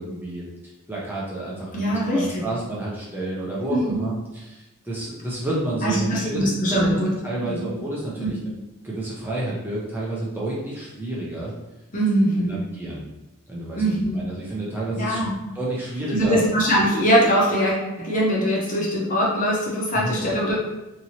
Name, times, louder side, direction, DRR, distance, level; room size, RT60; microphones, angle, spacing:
voice 1, 0.0-8.3 8.8-11.5 12.2-13.1 13.5-15.2 15.5-16.4 19.9-20.2, right 2 dB, 10° right, -7 dB, 0.5 m, -30 dB
voice 2, 1.7-2.4 3.7-4.0 5.8-7.1 7.4-7.6 8.2-8.3 11.9-12.6 13.8-14.2 14.9-15.3 16.1-20.6, equal, 35° left, -4 dB, 0.7 m, -22 dB
2.9 x 2.6 x 2.8 m, 1.0 s
head